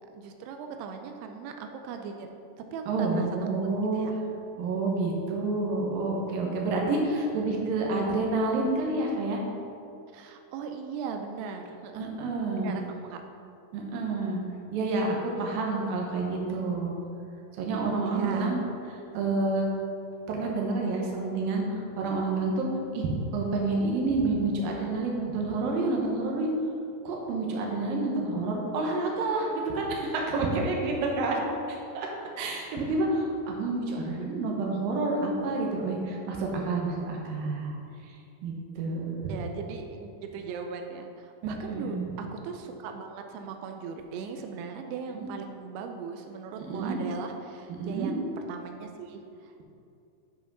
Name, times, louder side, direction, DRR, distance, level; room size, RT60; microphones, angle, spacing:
voice 1, 0.0-2.3 2.7-3.3 3.9-4.2 10.1-12.1 12.5-13.2 15.3-15.4 18.0-18.6 31.4-31.5 39.3-48.2 48.5-49.6, right 5 dB, 90° right, 5 dB, 2.7 m, -39 dB
voice 2, 2.9-4.1 4.6-9.4 11.9-12.7 13.7-14.4 14.7-16.9 17.6-18.6 19.1-19.7 20.3-22.7 22.9-26.5 27.0-31.4 31.9-32.1 32.4-37.8 38.4-39.3 41.4-42.0 45.1-45.3 46.6-47.0 47.7-48.1, right 3 dB, 70° right, -1 dB, 2.6 m, -29 dB
8.2 x 5.0 x 5.3 m, 2.5 s
omnidirectional pair, 4.6 m